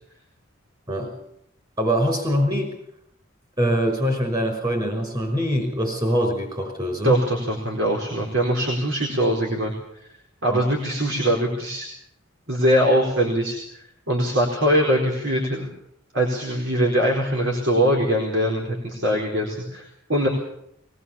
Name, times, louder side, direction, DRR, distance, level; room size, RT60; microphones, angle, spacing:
voice 1, 1.8-2.7 3.6-7.2 10.5-10.6, equal, 25° right, 3 dB, 5.6 m, -23 dB
voice 2, 7.0-10.1 10.4-11.9 12.5-15.7 16.1-20.3, equal, 65° right, -1 dB, 4.4 m, -22 dB
21.5 x 20.5 x 7.1 m, 0.72 s
head